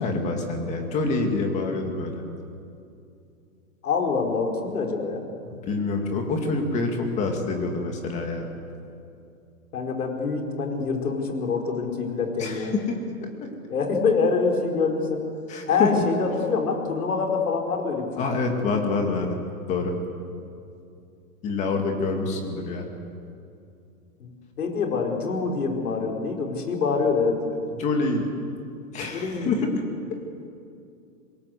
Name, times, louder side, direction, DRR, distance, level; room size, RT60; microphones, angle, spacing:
voice 1, 0.0-2.2 5.4-8.5 12.4-13.3 15.5-16.0 18.2-19.4 19.7-20.0 21.4-22.9 27.7-28.3 28.9-29.8, left 3 dB, 15° left, 3 dB, 2.1 m, -26 dB
voice 2, 3.8-5.2 9.7-12.7 13.7-15.3 15.7-18.1 24.2-24.3 24.6-27.4 29.1-29.6, left 4 dB, 70° left, 2 dB, 5.1 m, -25 dB
26.5 x 21.5 x 8.3 m, 2.5 s
hypercardioid pair, 170°, 46 cm